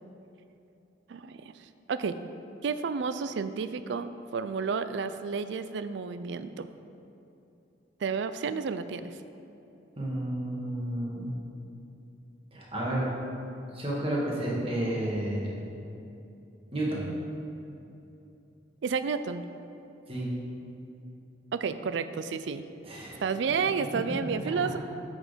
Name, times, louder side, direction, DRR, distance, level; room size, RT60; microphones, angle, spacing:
voice 1, 1.1-1.5 1.9-2.2 2.6-6.7 8.0-9.2 18.8-19.4 21.5-22.6 23.2-24.8, right 5 dB, 70° right, 12 dB, 0.4 m, -31 dB
voice 2, 10.0-11.3 12.5-13.1 13.7-15.6 16.7-17.0 20.1-20.3 22.8-23.2, right 1 dB, 30° right, -5 dB, 1.8 m, -31 dB
7.3 x 6.5 x 5.1 m, 2.8 s
head